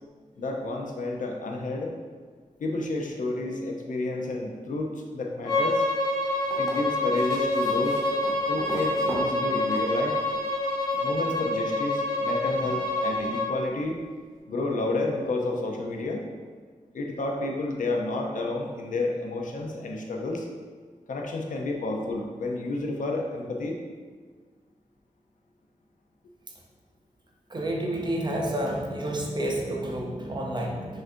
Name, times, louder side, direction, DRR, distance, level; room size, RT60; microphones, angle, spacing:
voice 1, 0.4-1.9 2.6-5.9 6.6-8.0 8.5-10.2 11.0-14.0 14.5-16.3 16.9-20.5 21.1-23.8, left 2 dB, 75° left, 1 dB, 0.5 m, -30 dB
Bowed string instrument, 5.4-13.5, left 1 dB, 30° left, 1.2 m, -27 dB
sound 1, 6.4-10.5 11.8-11.9, right 1 dB, ahead, 0.8 m, -39 dB
voice 2, 10.9-11.4 27.5-31.0, right 1 dB, 35° right, -1 dB, 0.5 m, -30 dB
5.8 x 2.5 x 2.6 m, 1.5 s
wide cardioid pair, 160°, 14 cm